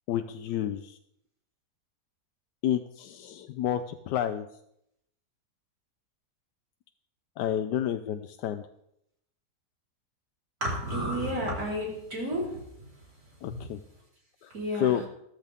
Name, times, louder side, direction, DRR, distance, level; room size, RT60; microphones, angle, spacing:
voice 1, 0.1-1.0 2.6-4.5 7.4-8.7 13.4-13.8 14.4-15.0, left 10 dB, 90° left, 8 dB, 1.2 m, -30 dB
voice 2, 10.6-12.6 14.5-15.0, equal, 60° right, -4 dB, 4.7 m, -31 dB
14.0 x 13.5 x 3.5 m, 0.76 s
omnidirectional pair, 1.7 m